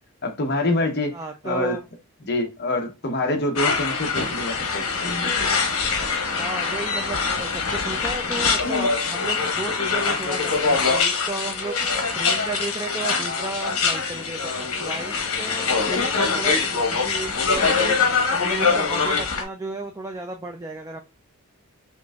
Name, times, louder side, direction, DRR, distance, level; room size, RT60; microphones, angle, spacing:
voice 1, 0.2-1.2 1.4-1.8 2.3-5.3, left 2 dB, 45° left, 0.8 m, -26 dB
voice 2, 1.1-1.8 6.3-11.8 12.1-14.5 14.8-21.0, right 3 dB, 15° right, 0.3 m, -34 dB
sound 1, 3.6-19.4, left 4 dB, 75° left, 1.1 m, -23 dB
5.6 x 2.6 x 2.3 m
head